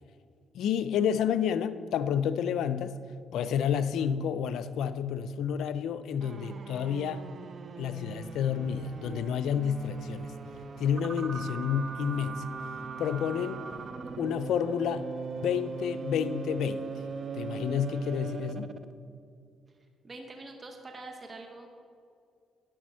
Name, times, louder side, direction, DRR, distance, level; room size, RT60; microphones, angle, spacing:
voice 1, 0.5-3.0 3.3-7.2 7.8-10.3 10.8-12.5 13.0-13.6 14.2-15.1 15.4-16.9 17.3-18.7, left 8 dB, 80° left, 12 dB, 0.5 m, -30 dB
sound 1, 6.2-18.9, right 5 dB, 45° right, 0.5 m, -40 dB
sound 2, 8.2-18.4, equal, 60° left, 1.6 m, -53 dB
voice 2, 20.0-21.7, right 2 dB, 30° right, 4 dB, 1.1 m, -44 dB
11.0 x 6.2 x 6.3 m, 2.3 s
cardioid pair, 90°, 0 cm